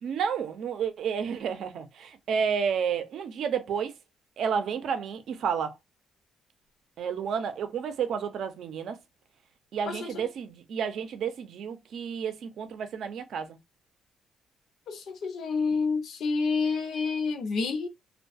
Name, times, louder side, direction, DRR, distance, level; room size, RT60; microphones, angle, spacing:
voice 1, 0.0-3.9 4.4-5.8 7.0-9.0 9.7-13.6, right 7 dB, 70° right, 0.5 m, -31 dB
voice 2, 9.9-10.3 14.9-17.9, left 4 dB, 70° left, 0.6 m, -29 dB
2.3 x 2.2 x 2.5 m
cardioid pair, 90°, 0 cm